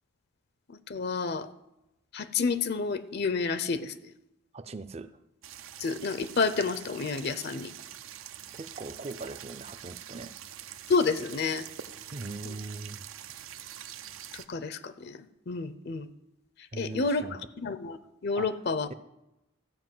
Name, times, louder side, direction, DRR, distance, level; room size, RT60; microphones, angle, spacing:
voice 1, 0.9-1.5 2.1-3.9 5.8-7.7 10.9-11.7 12.4-12.5 14.5-15.2 15.5-16.1 16.8-18.0 18.2-18.9, left 4 dB, 50° left, 0.5 m, -29 dB
voice 2, 4.5-5.2 8.6-10.3 12.1-13.1 16.7-17.4 18.4-18.6, right 3 dB, 30° right, 0.5 m, -40 dB
sound 1, 5.4-14.5, right 10 dB, 75° right, 0.6 m, -45 dB
14.5 x 5.1 x 7.7 m
head